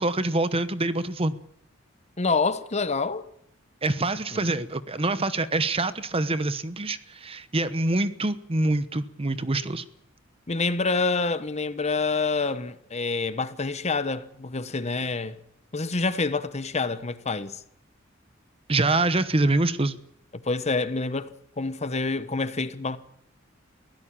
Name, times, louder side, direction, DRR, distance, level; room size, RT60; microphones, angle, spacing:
voice 1, 0.0-1.3 3.8-9.8 18.7-20.0, right 2 dB, 30° right, 1.0 m, -25 dB
voice 2, 2.2-3.3 4.3-4.5 10.5-15.4 15.7-17.6 20.3-23.0, left 3 dB, 35° left, 1.1 m, -27 dB
23.0 x 16.0 x 8.7 m
head